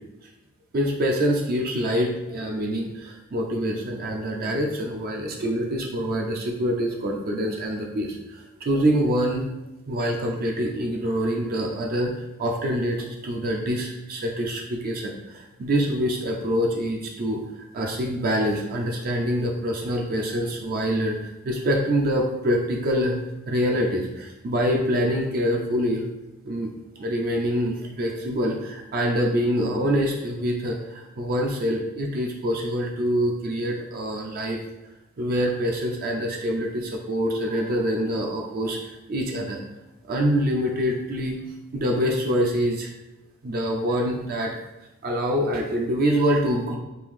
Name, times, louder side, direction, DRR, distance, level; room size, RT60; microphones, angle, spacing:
voice 1, 0.7-9.5 9.9-23.2 23.5-26.0 26.4-34.6 35.2-39.6 40.0-41.4 41.7-42.9 43.4-44.5 45.0-46.8, equal, 45° right, 1 dB, 0.4 m, -25 dB
3.2 x 2.6 x 3.6 m, 0.96 s
head